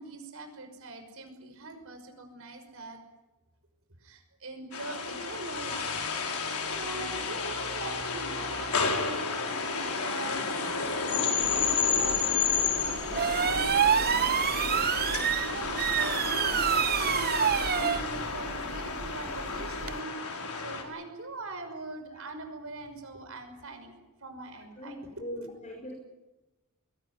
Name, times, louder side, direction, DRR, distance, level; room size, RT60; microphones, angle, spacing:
voice 1, 0.0-3.0 4.0-5.9 6.6-14.4 14.9-23.9 24.2-25.5, right 2 dB, 65° right, 6 dB, 5.7 m, -42 dB
sound 1, 4.7-20.8, left 5 dB, 85° left, 4.6 m, -31 dB
sound 2, 7.7-14.4, left 1 dB, 60° left, 7.8 m, -48 dB
sound 3, 11.4-20.0, right 8 dB, 45° right, 0.8 m, -29 dB
voice 2, 24.8-25.9, equal, 35° left, 1 dB, 5.2 m, -41 dB
22.0 x 18.5 x 9.6 m, 1.1 s
head